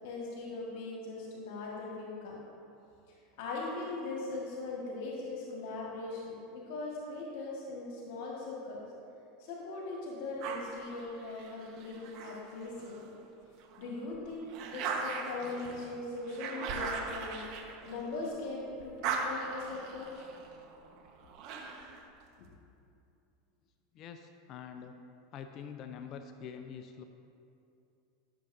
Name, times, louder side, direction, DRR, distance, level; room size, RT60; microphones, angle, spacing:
voice 1, 0.0-2.4 3.1-8.8 9.4-13.1 13.8-17.4 17.8-20.2, left 3 dB, 65° left, -3 dB, 1.7 m, -40 dB
sound 1, 10.4-13.1 13.6-18.4 18.7-22.0, right 4 dB, 55° right, 1.2 m, -39 dB
voice 2, 23.9-25.0 25.3-27.0, left 7 dB, 50° left, 6 dB, 0.5 m, -45 dB
15.0 x 7.0 x 2.7 m, 2.7 s
hypercardioid pair, 90°, 0 cm